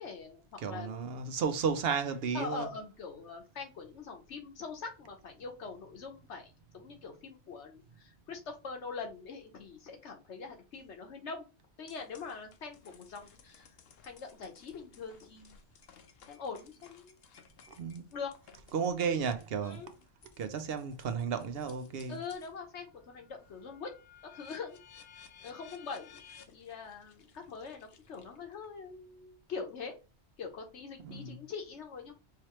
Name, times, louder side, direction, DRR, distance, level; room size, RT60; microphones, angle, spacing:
voice 1, 0.0-1.0 2.3-11.5 11.8-13.7 14.0-15.6 16.3-17.2 17.7-17.8 18.1-18.3 19.6-19.9 22.1-23.9 24.3-24.8 25.4-26.2 26.5-29.9 30.4-32.1, left 5 dB, 80° left, 1.3 m, -43 dB
voice 2, 0.6-2.7 17.7-18.1 18.7-19.8 20.4-22.2 31.0-31.4, right 6 dB, 65° right, 0.8 m, -33 dB
sound 1, 11.9-22.6 23.0-28.6, left 7 dB, 65° left, 0.8 m, -58 dB
4.9 x 2.9 x 3.0 m
omnidirectional pair, 1.2 m